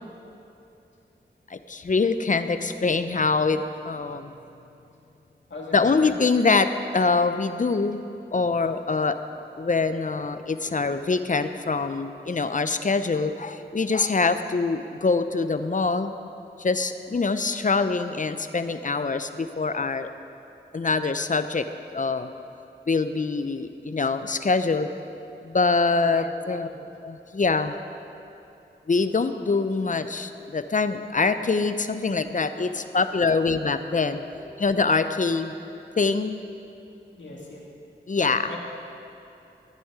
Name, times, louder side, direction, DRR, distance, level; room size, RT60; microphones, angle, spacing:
voice 1, 1.5-4.3 5.7-8.0 8.3-9.2 9.6-16.1 16.6-20.1 20.7-21.7 21.9-22.3 22.9-24.9 25.4-26.7 27.0-27.8 28.9-34.2 34.6-35.6 36.0-36.4 38.1-38.5, left 4 dB, 45° left, 10 dB, 0.6 m, -24 dB
voice 2, 5.5-6.1 26.0-26.8 32.6-33.5 34.3-34.4 37.2-37.6 38.4-38.6, left 2 dB, 80° left, -4 dB, 2.3 m, -42 dB
15.0 x 9.3 x 4.9 m, 2.8 s
wide cardioid pair, 60°, 19 cm